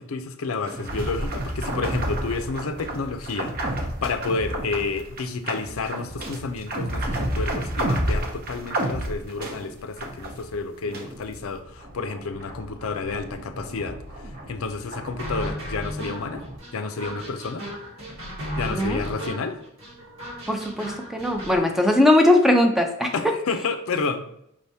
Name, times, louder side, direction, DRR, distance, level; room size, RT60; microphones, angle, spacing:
voice 1, 0.0-16.4 16.7-17.7 18.6-19.6 23.1-24.2, left 4 dB, 85° left, 8 dB, 0.5 m, -30 dB
sound 1, 0.7-10.5 10.9-16.6, right 1 dB, 45° right, 0.7 m, -31 dB
sound 2, 15.2-21.6, equal, 75° right, 1.3 m, -35 dB
voice 2, 18.7-19.0 20.5-23.1, left 1 dB, ahead, 4 dB, 0.4 m, -19 dB
5.2 x 3.4 x 2.7 m, 0.74 s
head